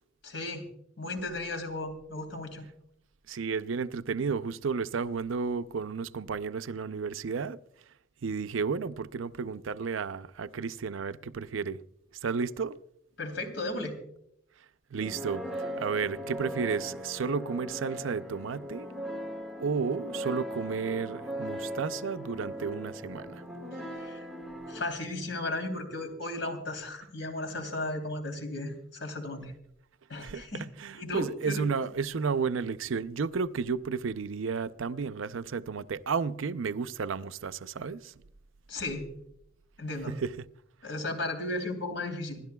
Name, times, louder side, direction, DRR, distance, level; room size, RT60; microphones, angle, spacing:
voice 1, 0.2-0.6 1.0-2.6 13.2-13.9 23.7-24.2 24.7-29.5 30.1-30.6 30.9-31.6 38.7-39.1 39.8-40.1 40.8-42.4, left 2 dB, 70° left, 3.2 m, -35 dB
voice 2, 3.3-7.6 8.2-11.8 12.2-12.8 14.9-18.9 19.6-23.4 30.2-38.1 40.1-40.5, right 5 dB, 85° right, 0.5 m, -32 dB
sound 1, 15.0-24.8, equal, ahead, 1.7 m, -39 dB
27.0 x 12.0 x 2.3 m
head